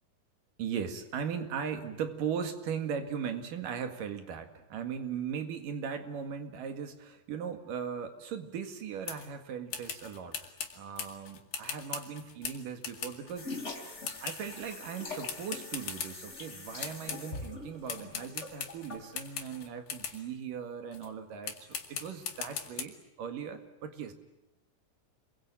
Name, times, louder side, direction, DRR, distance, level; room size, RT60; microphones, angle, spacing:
voice 1, 0.6-10.5 10.7-13.7 14.2-24.1, right 7 dB, 70° right, 7 dB, 3.5 m, -38 dB
sound 1, 9.1-9.3 9.7-13.4 14.0-14.7 15.3-16.5 16.8-17.5 17.9-20.2 20.9-21.1 21.4-22.8, left 7 dB, 75° left, 4.0 m, -40 dB
sound 2, 13.4-19.2, left 3 dB, 20° left, 3.1 m, -43 dB
28.0 x 22.5 x 9.0 m, 1.0 s
omnidirectional pair, 4.2 m